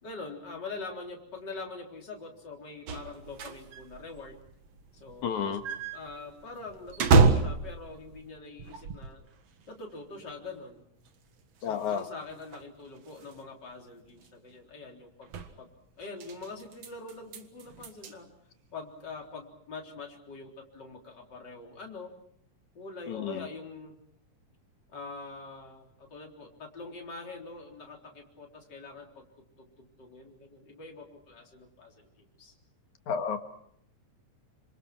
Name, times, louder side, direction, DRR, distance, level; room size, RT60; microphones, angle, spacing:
voice 1, 0.0-4.4 4.9-5.6 5.9-9.2 9.7-10.8 11.6-15.3 15.6-15.7 16.0-18.3 18.7-22.1 22.7-24.0 24.9-29.3 29.6-32.5, left 3 dB, 35° left, 1 dB, 4.3 m, -44 dB
sound 1, 2.9-9.3 9.6-9.7 10.3-10.4 11.1-11.2 11.4-11.5 11.7-12.0 12.3-13.4 14.1-14.3 15.2-15.5 16.0-18.1, right 4 dB, 60° right, 2.6 m, -29 dB
voice 2, 5.2-5.6 11.6-12.1 23.1-23.5 33.1-33.4, left 7 dB, 75° left, 7 dB, 3.1 m, -31 dB
28.0 x 26.0 x 6.0 m, 0.69 s
omnidirectional pair, 3.4 m